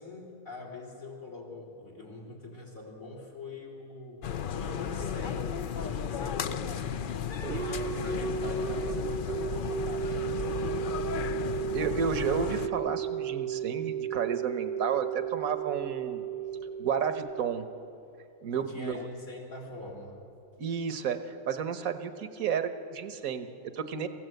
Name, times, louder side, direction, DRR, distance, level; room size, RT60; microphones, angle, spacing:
voice 1, 0.0-7.3 7.6-11.1 18.5-20.2, left 2 dB, 75° left, 0 dB, 4.1 m, -43 dB
sound 1, 4.2-12.7, left 7 dB, 55° left, 0.6 m, -34 dB
sound 2, 7.4-18.1, right 9 dB, 50° right, 0.8 m, -34 dB
voice 2, 11.7-16.2 16.8-17.7 18.4-19.1 20.6-24.1, right 6 dB, 80° right, 9 dB, 1.5 m, -32 dB
27.0 x 15.5 x 7.9 m, 2.8 s
omnidirectional pair, 1.5 m